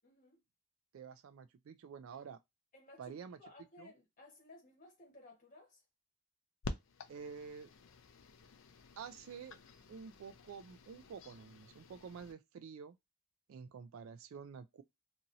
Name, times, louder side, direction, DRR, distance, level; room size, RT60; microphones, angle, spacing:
voice 1, 0.0-0.4 2.7-5.8, left 2 dB, 35° left, 1.2 m, -58 dB
voice 2, 0.9-2.4 3.0-3.4 3.8-3.9 7.1-7.7 9.0-9.6 9.9-12.9 13.5-14.8, right 6 dB, 70° right, 0.3 m, -49 dB
sound 1, 6.6-12.3, left 3 dB, 65° left, 0.4 m, -50 dB
2.8 x 2.6 x 2.6 m
head